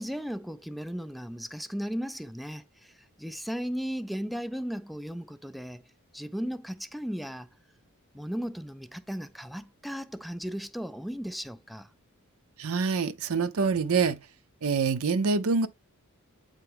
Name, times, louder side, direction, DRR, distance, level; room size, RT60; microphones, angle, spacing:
voice 1, 0.0-5.8 6.1-7.5 8.1-11.9, equal, ahead, 0.3 m, -36 dB
voice 2, 12.6-14.2 14.6-15.7, right 5 dB, 70° right, 0.6 m, -25 dB
8.8 x 3.4 x 3.5 m
head